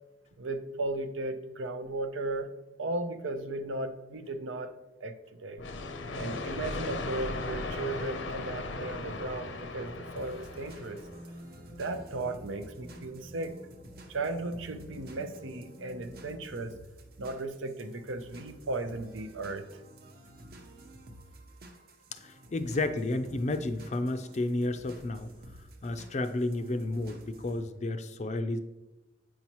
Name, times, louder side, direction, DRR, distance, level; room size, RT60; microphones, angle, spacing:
voice 1, 0.4-2.5 2.8-4.7 5.0-5.1 5.4-5.6 6.2-11.0 11.8-13.6 14.1-16.7 17.2-19.7, right 2 dB, 90° right, 8 dB, 0.6 m, -36 dB
sound 1, 5.6-11.3, left 2 dB, 80° left, 0.7 m, -37 dB
sound 2, 8.7-16.7, equal, 25° right, 1.1 m, -51 dB
sound 3, 10.2-27.6, right 1 dB, 50° right, 0.7 m, -52 dB
voice 2, 22.2-25.3 25.8-28.6, left 2 dB, 35° left, 9 dB, 0.4 m, -31 dB
8.7 x 5.6 x 3.0 m, 1.0 s
head